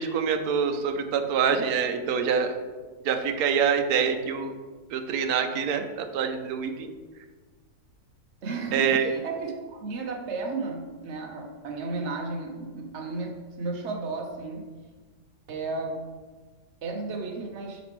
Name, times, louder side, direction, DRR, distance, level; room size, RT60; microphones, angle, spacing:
voice 1, 0.0-2.6 3.0-4.5 4.9-6.9 8.7-9.1, right 6 dB, 75° right, 6 dB, 1.1 m, -25 dB
voice 2, 8.4-14.7 15.5-16.0 16.8-17.8, right 3 dB, 50° right, 2 dB, 1.1 m, -33 dB
8.4 x 5.2 x 3.1 m, 1.4 s
omnidirectional pair, 1.7 m